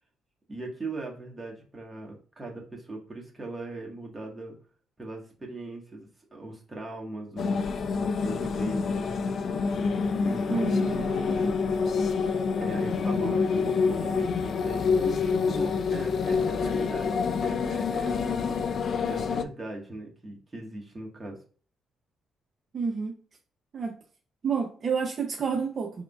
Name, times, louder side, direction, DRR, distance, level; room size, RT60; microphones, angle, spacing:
voice 1, 0.5-4.5 5.0-9.0 10.2-11.6 12.6-18.5 19.0-21.4, right 2 dB, 20° right, -1 dB, 1.5 m, -39 dB
sound 1, 7.4-19.4, left 5 dB, 55° left, 0.4 m, -27 dB
voice 2, 10.5-11.0 22.7-23.1 23.7-23.9 24.4-25.9, right 5 dB, 45° right, 2 dB, 0.6 m, -29 dB
4.9 x 3.6 x 2.4 m, 0.41 s
cardioid pair, 90°, 0 cm